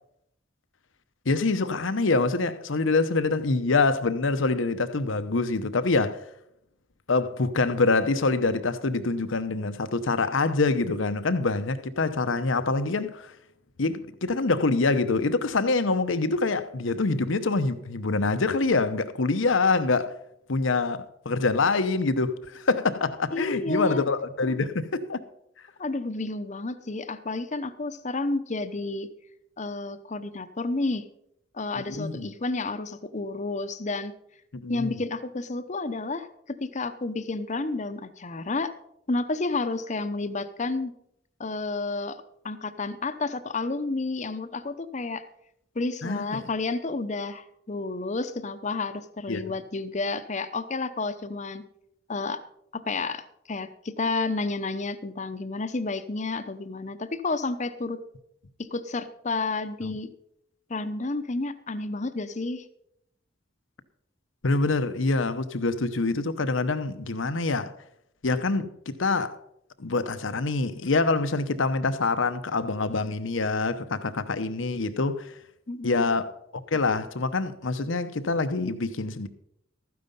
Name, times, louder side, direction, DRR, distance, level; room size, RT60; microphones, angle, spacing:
voice 1, 1.3-6.2 7.1-13.3 13.8-20.1 20.5-25.2 31.8-32.3 34.5-35.0 46.0-46.4 49.3-49.4 59.8-59.9 64.4-67.7 68.2-69.4 69.8-75.3 75.8-76.3 76.7-79.3, left 3 dB, 80° left, 0.9 m, -25 dB
voice 2, 23.3-24.0 25.8-29.1 29.6-31.1 31.5-34.1 34.7-38.7 39.1-40.9 41.4-45.2 45.7-51.6 52.1-52.4 52.7-58.0 58.6-60.1 60.7-62.6 75.7-76.1, left 3 dB, 40° left, 0.8 m, -31 dB
13.0 x 9.5 x 5.4 m
head